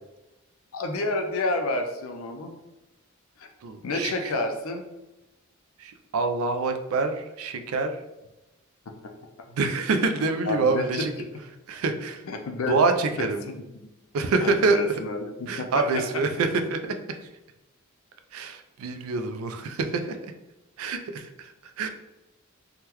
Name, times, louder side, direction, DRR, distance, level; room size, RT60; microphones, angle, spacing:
voice 1, 0.7-2.5 3.4-3.5 3.8-4.8 10.5-11.1 12.2-12.8 13.2-13.6 14.4-15.8, left 2 dB, 75° left, 4 dB, 0.5 m, -29 dB
voice 2, 3.6-4.3 5.8-7.9 9.5-11.1 11.7-12.2 12.7-13.4 14.1-14.8 15.5-17.2 18.3-20.2 20.8-21.5 21.8-21.9, right 3 dB, 75° right, 7 dB, 0.4 m, -26 dB
3.6 x 2.1 x 2.9 m, 0.98 s
head